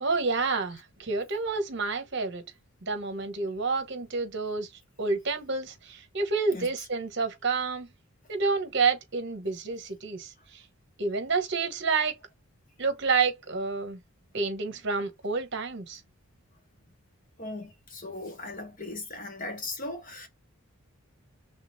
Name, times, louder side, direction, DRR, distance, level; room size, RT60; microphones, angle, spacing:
voice 1, 0.0-2.5 2.8-4.7 5.0-7.9 8.3-10.6 11.0-12.2 12.8-14.0 14.3-16.0, right 4 dB, 55° right, 1.0 m, -29 dB
voice 2, 17.4-20.3, left 2 dB, 40° left, 1.5 m, -38 dB
3.6 x 3.3 x 2.6 m
head